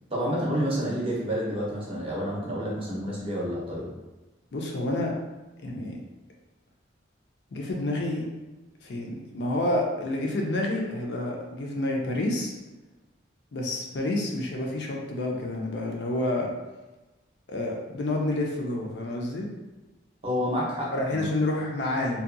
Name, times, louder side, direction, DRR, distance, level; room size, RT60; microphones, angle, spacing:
voice 1, 0.1-3.9 20.2-21.3, equal, 30° right, -4 dB, 0.6 m, -29 dB
voice 2, 4.5-5.1 5.6-6.0 7.5-8.2 8.8-12.5 13.5-16.5 17.5-19.5 20.9-22.2, left 1 dB, 65° left, 0 dB, 0.4 m, -29 dB
2.7 x 2.2 x 2.5 m, 1.1 s
head